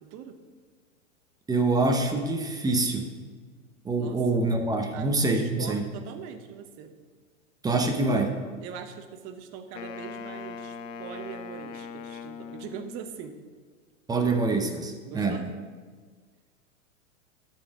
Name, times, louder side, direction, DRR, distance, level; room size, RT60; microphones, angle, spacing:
voice 1, 1.5-3.1 3.8-5.8 7.6-8.3 14.1-15.4, right 3 dB, 10° right, 4 dB, 0.8 m, -25 dB
voice 2, 4.0-4.4 4.9-6.9 8.6-13.4 15.0-15.5, right 8 dB, 40° right, 7 dB, 1.0 m, -41 dB
Wind instrument woodwind instrument, 9.7-13.2, left 6 dB, 70° left, 0.7 m, -40 dB
12.5 x 4.4 x 6.1 m, 1.5 s
hypercardioid pair, 120°, 40 cm